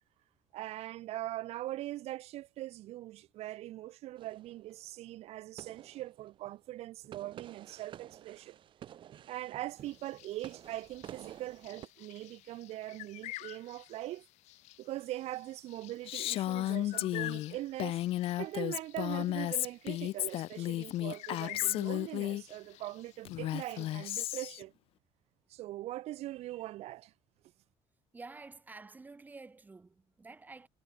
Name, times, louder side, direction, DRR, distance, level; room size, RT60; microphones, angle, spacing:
voice 1, 0.5-8.6 9.3-14.2 14.8-18.0 18.4-24.7 25.5-27.1, right 15 dB, 65° right, 1.4 m, -41 dB
sound 1, 4.2-5.0 5.6-6.6 7.0-11.9, right 10 dB, 45° right, 2.2 m, -51 dB
sound 2, 9.8-24.1, left 19 dB, 85° left, 2.0 m, -50 dB
Female speech woman speaking, 16.1-22.4 23.3-24.6, left 14 dB, 55° left, 0.5 m, -33 dB
voice 2, 28.1-30.7, right 3 dB, 15° right, 3.0 m, -50 dB
cardioid pair, 160°, 11 cm